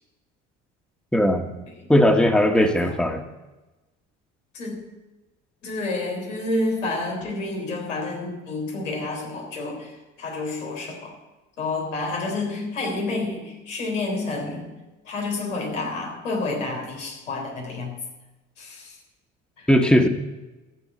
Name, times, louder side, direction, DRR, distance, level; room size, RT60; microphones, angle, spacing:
voice 1, 1.1-1.5 1.9-3.2 19.7-20.1, equal, ahead, 6 dB, 1.6 m, -18 dB
voice 2, 2.6-3.0 4.5-4.8 5.6-11.2 11.6-14.7 15.1-17.9 18.6-19.0 19.6-19.7, left 2 dB, 90° left, 0 dB, 3.8 m, -29 dB
14.5 x 7.1 x 8.3 m, 1.1 s
hypercardioid pair, 65°, 36 cm